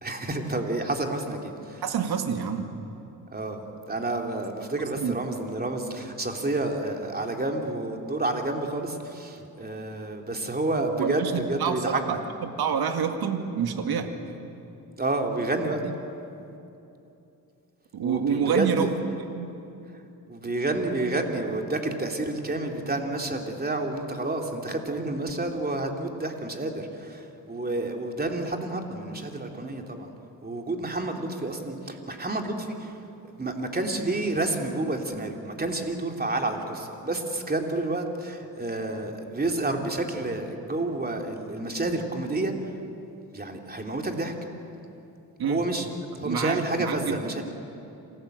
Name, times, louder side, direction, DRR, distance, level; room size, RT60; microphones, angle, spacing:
voice 1, 0.0-1.8 3.3-12.2 15.0-15.8 18.0-18.9 20.3-30.1 30.4-33.1 33.4-42.7 43.3-44.3 45.4-45.9 46.1-47.4, right 2 dB, 25° right, 3 dB, 3.0 m, -29 dB
voice 2, 1.8-2.7 5.0-5.2 11.0-14.1 17.9-18.9 19.3-19.5 45.4-45.6 46.2-47.2, right 7 dB, 65° right, 6 dB, 2.1 m, -27 dB
27.0 x 15.5 x 8.0 m, 2.8 s
cardioid pair, 75°, 40 cm